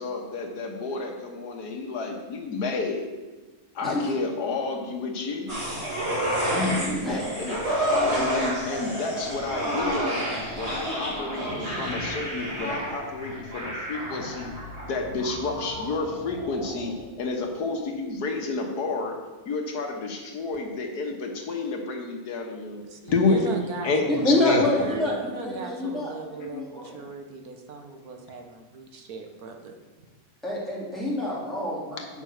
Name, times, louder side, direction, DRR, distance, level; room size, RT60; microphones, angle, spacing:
voice 1, 0.0-3.0 3.8-5.5 7.1-7.6 8.1-10.2 10.6-14.5 14.9-16.9 17.2-19.1 19.5-22.8 23.1-23.5 23.8-24.6 26.4-26.5, left 3 dB, 90° left, 2 dB, 1.8 m, -30 dB
sound 1, 5.5-17.0 17.3-17.4, equal, 45° right, 3.4 m, -30 dB
voice 2, 6.5-7.4 24.2-27.0 30.4-32.2, left 1 dB, ahead, -7 dB, 2.9 m, -27 dB
voice 3, 22.8-24.2 24.7-29.7, right 3 dB, 75° right, 4 dB, 1.5 m, -38 dB
8.9 x 5.6 x 6.5 m, 1.2 s
omnidirectional pair, 1.6 m